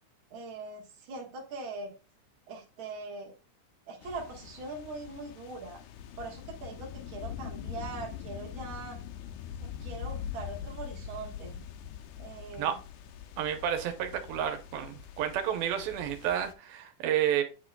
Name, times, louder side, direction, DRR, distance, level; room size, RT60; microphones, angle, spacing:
voice 1, 0.3-1.9 2.5-3.3 3.9-5.8 6.2-9.0 9.6-11.6 12.2-12.8, right 3 dB, 55° right, 1.5 m, -41 dB
sound 1, 4.0-16.5, left 9 dB, 80° left, 1.7 m, -43 dB
voice 2, 13.4-17.4, right 10 dB, 85° right, 2.7 m, -30 dB
9.1 x 4.9 x 2.2 m
omnidirectional pair, 4.1 m